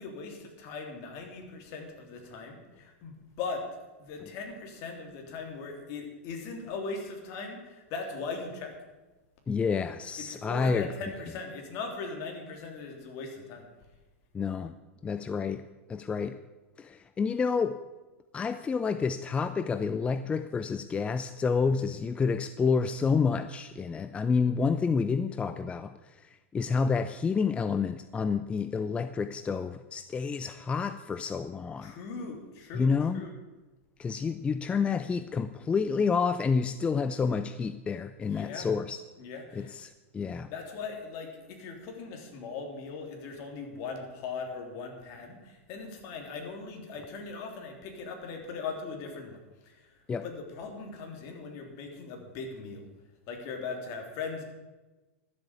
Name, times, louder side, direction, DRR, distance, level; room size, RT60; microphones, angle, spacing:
voice 1, 0.0-3.7 4.0-8.8 10.2-13.7 31.8-33.3 38.2-38.7 39.2-39.7 40.5-49.4 49.6-49.8 50.2-52.8 53.3-54.4, left 4 dB, 50° left, 2 dB, 3.4 m, -39 dB
voice 2, 9.5-10.9 14.3-14.7 15.0-15.6 15.9-16.4 16.8-17.8 18.3-31.9 32.7-33.2 34.0-39.0 39.5-40.5 50.1-50.2, left 5 dB, 15° left, 12 dB, 0.5 m, -29 dB
13.0 x 7.9 x 8.3 m, 1.1 s
hypercardioid pair, 120°, 7 cm